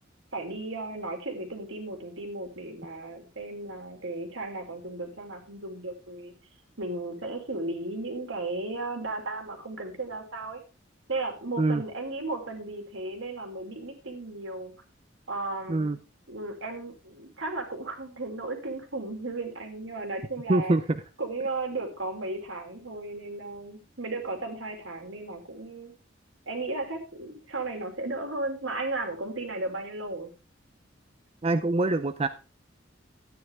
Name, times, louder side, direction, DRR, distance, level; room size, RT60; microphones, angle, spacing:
voice 1, 0.3-6.3 6.8-10.6 11.1-14.7 15.3-15.9 16.3-20.8 21.2-25.9 26.5-30.3, right 2 dB, 80° right, 4 dB, 2.8 m, -35 dB
voice 2, 20.5-21.0 31.4-32.3, right 2 dB, 30° right, 10 dB, 0.5 m, -24 dB
12.0 x 9.4 x 3.4 m, 0.32 s
head